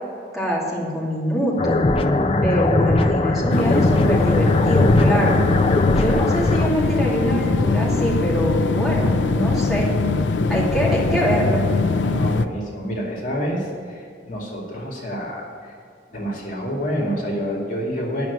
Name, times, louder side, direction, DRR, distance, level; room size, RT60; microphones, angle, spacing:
voice 1, 0.3-1.8 2.4-5.4 5.9-9.9 10.5-11.6, equal, ahead, -6 dB, 2.6 m, -23 dB
sound 1, 1.6-6.7, left 2 dB, 30° left, 0.6 m, -20 dB
sound 2, 3.5-12.5, left 3 dB, 80° left, 0.5 m, -21 dB
voice 2, 12.0-15.7 16.1-18.3, equal, 50° left, -2 dB, 2.3 m, -28 dB
11.0 x 6.1 x 8.3 m, 2.5 s
head